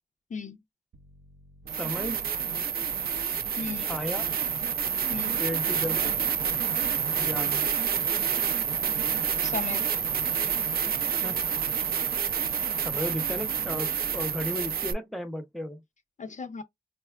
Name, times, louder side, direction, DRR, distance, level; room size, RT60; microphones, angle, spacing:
sound 1, 0.9-1.0 1.6-14.9, right 7 dB, 70° right, 0.4 m, -28 dB
voice 1, 1.8-2.2 3.8-4.2 5.4-6.1 7.2-7.6 11.2-11.4 12.8-15.8, equal, ahead, 0.5 m, -34 dB
voice 2, 3.6-3.9 5.1-5.4 9.4-9.9 16.2-16.6, left 4 dB, 50° left, 0.5 m, -35 dB
4.2 x 2.2 x 2.2 m
wide cardioid pair, 75°, 16 cm